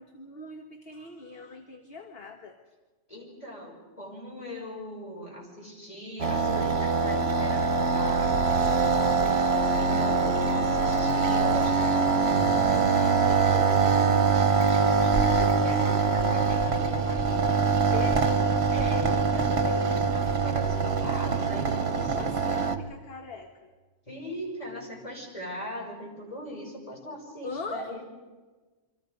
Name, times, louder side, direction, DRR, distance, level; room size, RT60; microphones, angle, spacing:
voice 1, 0.0-2.6 17.9-18.3 22.0-23.7 27.4-28.0, left 3 dB, 55° left, 5 dB, 1.6 m, -40 dB
voice 2, 3.1-17.5 18.7-22.4 24.1-28.0, equal, 30° left, -1 dB, 5.9 m, -40 dB
sound 1, 6.2-22.8, right 5 dB, 60° right, 1.3 m, -24 dB
27.5 x 25.0 x 5.3 m, 1.3 s
omnidirectional pair, 1.2 m